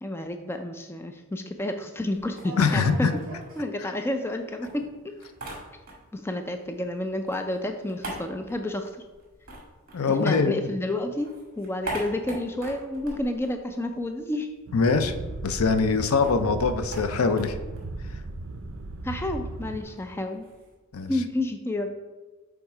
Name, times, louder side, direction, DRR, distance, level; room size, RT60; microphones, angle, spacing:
voice 1, 0.0-3.1 3.6-4.9 6.1-9.0 10.0-11.3 11.6-14.5 19.0-20.5 21.1-21.9, left 1 dB, 10° left, 6 dB, 0.3 m, -30 dB
sound 1, 2.1-4.3 4.6-6.3 6.5-10.7 11.0-14.3 14.6-14.7 14.9-20.7, right 1 dB, 40° right, 1.9 m, -41 dB
voice 2, 2.6-3.1 9.9-10.6 14.7-15.1 15.4-17.6 20.9-21.1, left 4 dB, 85° left, 10 dB, 0.6 m, -23 dB
sound 2, 14.7-19.8, right 2 dB, 65° right, 0.5 m, -36 dB
7.1 x 3.6 x 4.8 m, 1.2 s
head